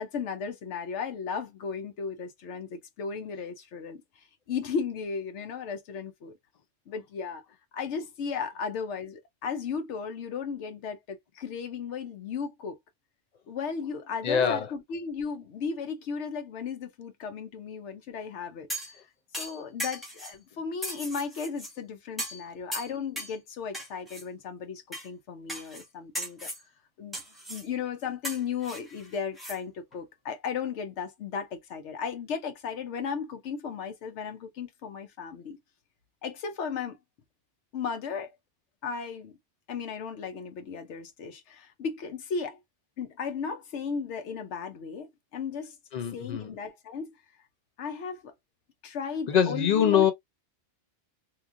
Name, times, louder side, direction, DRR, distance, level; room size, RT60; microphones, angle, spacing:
voice 1, 0.0-6.3 6.9-7.4 7.7-12.8 13.5-19.0 19.3-26.5 27.0-27.2 27.5-35.6 36.2-37.0 37.7-38.3 38.8-39.4 39.7-42.6 43.0-45.8 46.1-47.1 47.8-48.3 48.8-50.0, left 6 dB, 85° left, 1.0 m, -35 dB
voice 2, 14.2-14.7 45.9-46.5 49.3-50.1, left 8 dB, 55° left, 0.5 m, -24 dB
sound 1, 18.7-19.0 19.3-20.4 20.8-21.7 22.2-22.4 22.7-23.4 23.7-24.2 24.9-25.1 25.5-25.8 26.1-26.6 27.1-27.7 28.2-29.6 29.9-30.0, equal, ahead, 1.1 m, -37 dB
3.0 x 2.4 x 2.4 m
omnidirectional pair, 1.1 m